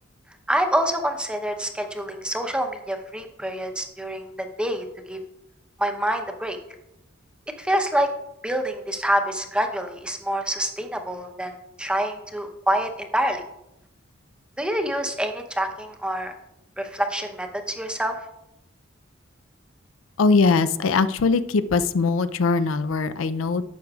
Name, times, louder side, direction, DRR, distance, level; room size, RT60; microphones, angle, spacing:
voice 1, 0.5-5.2 5.8-6.6 7.6-8.1 8.4-13.4 14.6-16.3 16.8-18.1, right 1 dB, 5° right, 5 dB, 0.8 m, -26 dB
voice 2, 20.2-23.6, left 4 dB, 85° left, 12 dB, 0.5 m, -21 dB
11.5 x 7.7 x 2.4 m, 0.84 s
head